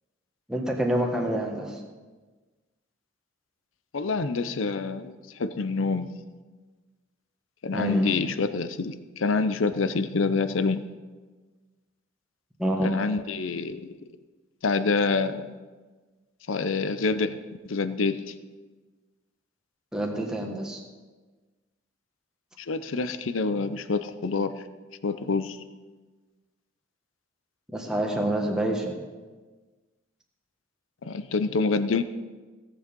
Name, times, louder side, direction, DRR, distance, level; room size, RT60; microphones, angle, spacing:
voice 1, 0.5-1.8 7.7-8.1 12.6-13.0 19.9-20.8 27.7-28.9, right 1 dB, 5° right, 0 dB, 1.4 m, -27 dB
voice 2, 3.9-6.1 7.6-10.9 12.8-13.9 14.6-15.5 16.5-18.3 22.6-24.6 25.0-25.6 31.0-32.0, left 4 dB, 80° left, 12 dB, 0.6 m, -27 dB
17.0 x 7.0 x 5.3 m, 1.3 s
head